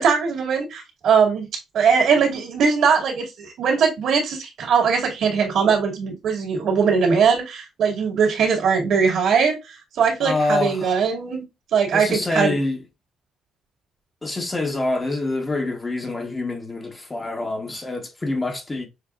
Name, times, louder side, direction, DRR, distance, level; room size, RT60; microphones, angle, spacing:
voice 1, 0.0-1.5 1.7-11.4 11.7-12.6, right 6 dB, 75° right, 2.2 m, -20 dB
voice 2, 10.2-10.9 11.9-12.8 14.2-18.9, left 2 dB, 20° left, 1.2 m, -26 dB
6.5 x 2.7 x 2.4 m
cardioid pair, 90°, 0 cm